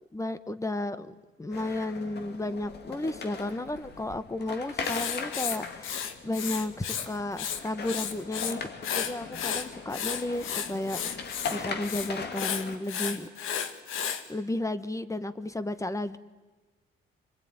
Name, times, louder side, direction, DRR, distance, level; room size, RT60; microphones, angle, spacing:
voice 1, 0.1-13.3 14.3-16.2, left 1 dB, 15° left, 13 dB, 1.4 m, -33 dB
sound 1, 1.5-12.8, left 5 dB, 55° left, 2.4 m, -39 dB
Writing, 4.8-7.1 7.3-8.5 8.8-14.2, left 8 dB, 85° left, 1.8 m, -33 dB
26.0 x 21.5 x 9.7 m, 1.2 s
cardioid pair, 90°, 20 cm